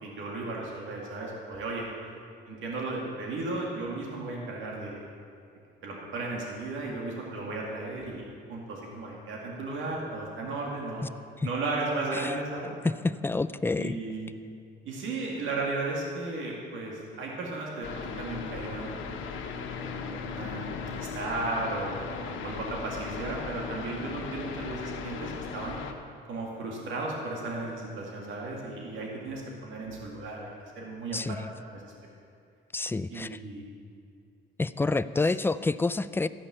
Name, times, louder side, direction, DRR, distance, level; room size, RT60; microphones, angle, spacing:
voice 1, 0.0-1.9 2.5-5.0 5.8-8.2 8.5-11.1 11.4-12.7 13.8-14.3 14.8-25.8 26.3-31.4 31.7-31.9 33.1-33.7, right 2 dB, 80° right, -2 dB, 2.2 m, -35 dB
voice 2, 12.8-14.0 31.1-31.5 32.7-33.4 34.6-36.3, left 3 dB, 10° left, 14 dB, 0.3 m, -28 dB
sound 1, 17.8-25.9, left 5 dB, 90° left, 1.1 m, -37 dB
14.0 x 5.6 x 8.7 m, 2.5 s
cardioid pair, 90°, 20 cm